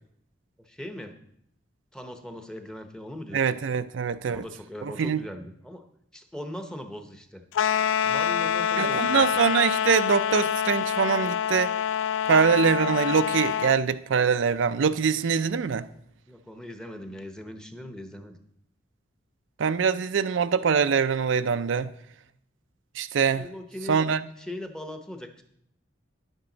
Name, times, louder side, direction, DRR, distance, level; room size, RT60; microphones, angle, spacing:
voice 1, 0.6-1.2 1.9-3.5 4.2-5.9 6.1-7.5 8.0-9.3 16.3-18.4 23.3-24.0 24.4-25.4, left 1 dB, 5° left, 0.8 m, -40 dB
voice 2, 3.3-4.4 5.0-5.2 8.8-11.7 12.3-15.9 19.6-21.9 23.0-23.4 23.9-24.2, right 6 dB, 85° right, 0.5 m, -23 dB
sound 1, 7.5-13.8, left 8 dB, 85° left, 0.3 m, -26 dB
10.5 x 8.9 x 3.9 m
head